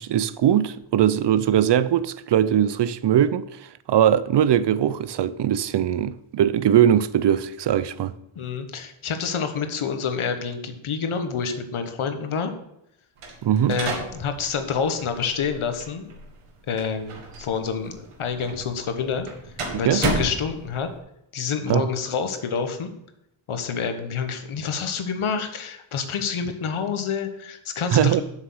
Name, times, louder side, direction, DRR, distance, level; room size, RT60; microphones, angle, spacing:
voice 1, 0.0-3.5 3.9-8.1 13.4-13.8 19.8-20.0 21.7-21.9 27.9-28.2, right 10 dB, 55° right, 0.6 m, -20 dB
voice 2, 8.3-12.5 13.7-16.2 16.7-19.3 19.8-20.9 21.3-22.9 23.5-28.2, left 6 dB, 75° left, 1.3 m, -28 dB
sound 1, 13.2-21.0, right 3 dB, 85° right, 2.1 m, -33 dB
7.6 x 6.4 x 6.2 m
wide cardioid pair, 130°, 50 cm